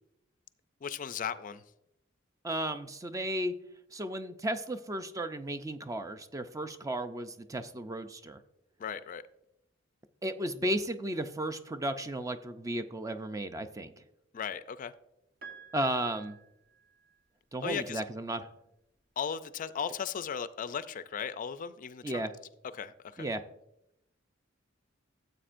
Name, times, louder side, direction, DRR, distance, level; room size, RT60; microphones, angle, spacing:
voice 1, 0.8-1.6 8.8-9.2 14.3-14.9 17.6-18.0 19.2-22.2 22.7-23.3, left 7 dB, 45° left, 0.4 m, -36 dB
voice 2, 2.4-3.5 3.9-8.4 10.2-13.9 15.7-16.4 17.5-18.5 22.0-22.3 23.2-23.4, right 1 dB, 15° right, 0.4 m, -34 dB
Piano, 15.4-17.4 18.7-18.8, right 5 dB, 55° right, 1.1 m, -51 dB
14.5 x 7.8 x 2.5 m
head